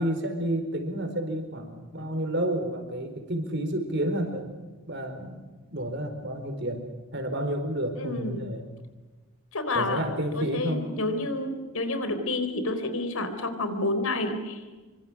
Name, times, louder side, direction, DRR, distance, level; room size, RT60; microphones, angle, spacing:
voice 1, 0.0-4.6 4.9-5.4 5.7-6.8 7.1-8.7 9.7-10.9, right 1 dB, 55° right, 6 dB, 4.7 m, -30 dB
voice 2, 8.0-8.4 9.5-10.1 10.4-14.6, left 2 dB, 75° left, 9 dB, 3.8 m, -29 dB
27.0 x 25.0 x 6.4 m, 1.3 s
head